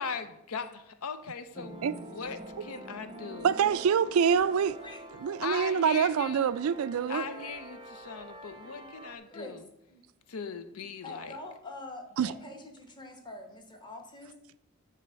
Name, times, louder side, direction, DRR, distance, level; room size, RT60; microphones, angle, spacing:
voice 1, 0.0-1.8 2.1-3.5 5.4-6.5 7.1-9.7 10.3-11.4, left 5 dB, 75° left, 0.6 m, -39 dB
sound 1, 1.5-9.2, right 1 dB, 20° right, 0.7 m, -46 dB
voice 2, 3.4-4.8 5.2-7.2 12.2-12.3, right 7 dB, 70° right, 0.3 m, -25 dB
voice 3, 8.6-9.6 9.9-10.0 10.7-14.3, left 2 dB, 20° left, 1.0 m, -45 dB
9.2 x 3.4 x 6.3 m
head